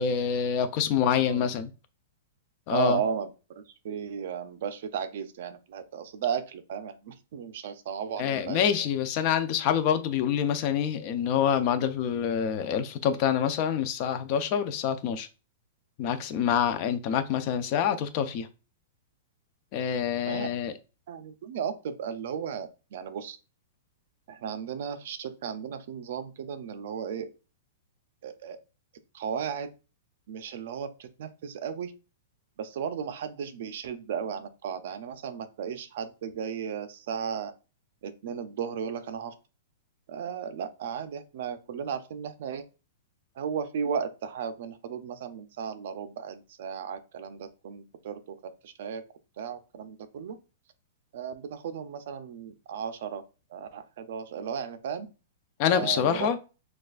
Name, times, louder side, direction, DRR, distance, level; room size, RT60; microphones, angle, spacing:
voice 1, 0.0-1.7 2.7-3.0 8.2-15.3 16.0-18.5 19.7-20.8 55.6-56.4, left 8 dB, 30° left, 0.4 m, -26 dB
voice 2, 0.9-1.4 2.7-3.3 3.8-8.6 20.3-20.5 21.1-23.4 24.3-27.3 28.2-28.6 29.1-29.7 30.3-31.9 32.6-37.5 38.0-39.3 40.1-42.6 43.4-48.4 48.6-49.0 49.4-50.4 51.1-53.2 53.5-55.1 55.7-56.3, right 7 dB, 50° right, 0.5 m, -35 dB
6.4 x 2.4 x 2.4 m
supercardioid pair, 180°, 0 cm